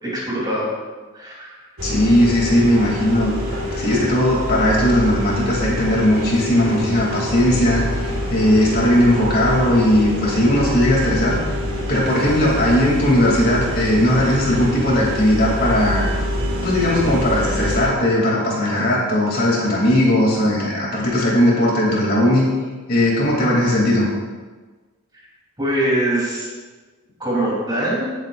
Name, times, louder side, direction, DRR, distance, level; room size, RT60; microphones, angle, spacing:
voice 1, 0.0-0.7 1.1-1.6 25.6-26.5 27.2-28.1, right 1 dB, 20° right, -5 dB, 3.6 m, -22 dB
voice 2, 1.8-11.4 11.9-16.0 16.6-22.5 22.9-24.1, left 1 dB, 50° left, -3 dB, 3.0 m, -18 dB
sound 1, 1.8-17.9, left 1 dB, 85° right, 1.8 m, -26 dB
17.5 x 8.4 x 2.6 m, 1.3 s
head